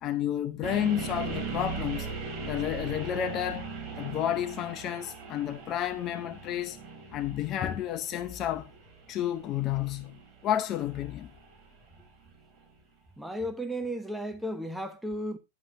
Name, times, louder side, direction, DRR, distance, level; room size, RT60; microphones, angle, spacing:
voice 1, 0.0-2.1 2.5-3.7 4.0-6.8 7.1-8.7 9.1-10.1 10.4-11.3, left 11 dB, 35° left, 0.7 m, -31 dB
sound 1, 0.6-12.6, right 4 dB, 20° right, 3.5 m, -40 dB
voice 2, 13.2-15.4, equal, ahead, 0.9 m, -34 dB
9.7 x 7.1 x 2.7 m
hypercardioid pair, 120°, 0 cm